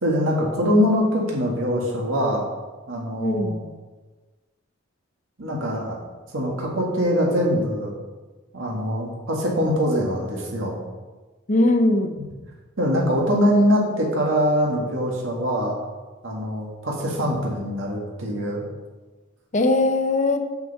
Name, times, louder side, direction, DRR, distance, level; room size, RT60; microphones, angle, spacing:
voice 1, 0.0-2.4 2.9-3.6 5.4-6.0 6.3-7.9 8.5-10.8 12.2-12.3 12.8-15.7 16.2-18.6, equal, 85° right, -2 dB, 1.9 m, -23 dB
voice 2, 3.2-3.6 11.5-12.1 19.5-20.4, left 2 dB, 40° left, 7 dB, 0.8 m, -20 dB
7.8 x 5.1 x 6.7 m, 1.3 s
head